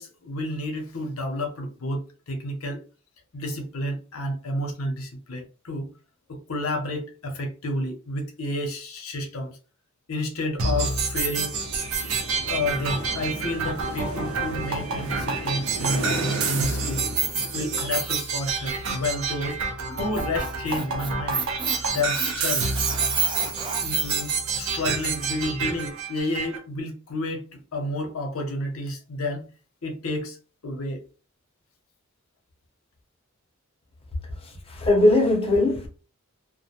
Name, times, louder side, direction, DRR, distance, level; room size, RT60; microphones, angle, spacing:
voice 1, 0.0-2.8 3.3-5.9 6.3-9.6 10.1-11.5 12.5-17.1 17.5-19.6 20.0-21.4 21.9-22.7 23.8-29.5 29.8-30.4 30.6-31.0, left 1 dB, 75° left, 0.7 m, -30 dB
sound 1, 10.6-26.6, right 4 dB, 75° right, 0.6 m, -28 dB
sound 2, 11.4-17.9, right 1 dB, 90° right, 1.0 m, -36 dB
Squeak, 19.9-24.1, right 5 dB, 25° right, 0.4 m, -31 dB
voice 2, 34.7-35.9, left 2 dB, 25° left, 0.7 m, -19 dB
2.3 x 2.1 x 2.8 m
head